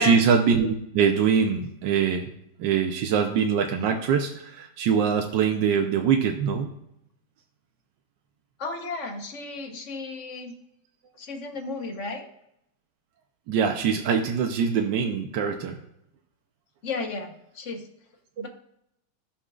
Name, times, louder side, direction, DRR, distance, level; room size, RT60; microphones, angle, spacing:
voice 1, 0.0-2.3 2.6-6.8 13.5-15.8, right 6 dB, 85° right, 3 dB, 1.4 m, -23 dB
voice 2, 8.6-10.5 11.2-12.3 16.8-17.9 18.4-18.5, left 3 dB, 50° left, 5 dB, 1.3 m, -33 dB
17.0 x 5.9 x 2.4 m, 0.79 s
omnidirectional pair, 1.9 m